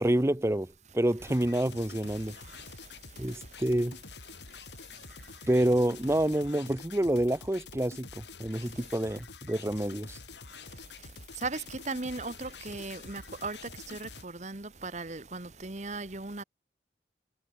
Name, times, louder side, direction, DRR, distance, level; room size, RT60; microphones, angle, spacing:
voice 1, 0.0-2.4 3.2-4.0 5.5-10.2, right 1 dB, 15° right, 0.7 m, -28 dB
sound 1, 1.2-14.2, left 4 dB, 80° left, 4.3 m, -47 dB
voice 2, 2.3-3.6 4.5-5.5 8.6-8.8 10.5-16.4, right 3 dB, 40° right, 1.4 m, -39 dB
head